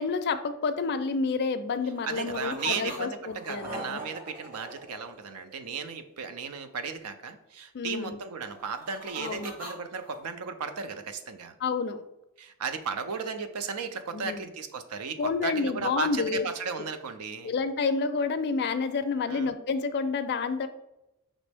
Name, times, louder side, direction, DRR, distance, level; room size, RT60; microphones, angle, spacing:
voice 1, 0.0-4.0 7.7-8.2 9.2-9.5 11.6-12.0 14.1-14.5 15.2-16.5 17.4-20.7, left 4 dB, 50° left, 9 dB, 0.4 m, -29 dB
sound 1, 1.8-3.0 3.2-5.8 8.4-10.2, right 1 dB, 40° right, 1.1 m, -42 dB
voice 2, 2.0-11.5 12.4-17.5 19.3-19.5, right 5 dB, 85° right, 9 dB, 0.5 m, -35 dB
5.1 x 3.1 x 3.4 m, 0.90 s
head